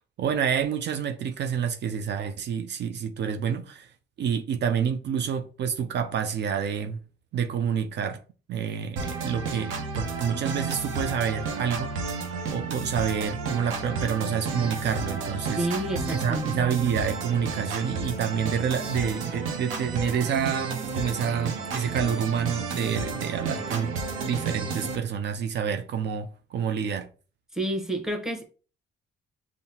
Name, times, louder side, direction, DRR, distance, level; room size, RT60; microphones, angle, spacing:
voice 1, 0.2-7.0 7.3-8.2 8.5-11.9 12.5-15.7 16.1-23.9 24.2-27.1, right 7 dB, 60° right, 0.4 m, -28 dB
sound 1, 9.0-25.0, right 4 dB, 85° right, 0.7 m, -32 dB
voice 2, 15.6-16.6 27.5-28.5, right 1 dB, ahead, 0.9 m, -29 dB
5.6 x 2.0 x 2.7 m
cardioid pair, 90°, 20 cm